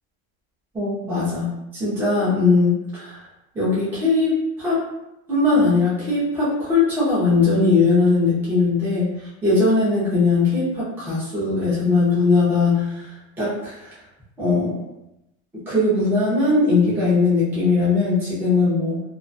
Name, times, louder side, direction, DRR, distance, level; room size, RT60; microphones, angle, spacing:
voice 1, 0.7-3.2 3.5-4.8 5.3-13.9 14.4-14.8 15.7-19.0, left 3 dB, 5° right, -10 dB, 0.5 m, -20 dB
2.3 x 2.3 x 2.5 m, 0.88 s
cardioid pair, 175°, 37 cm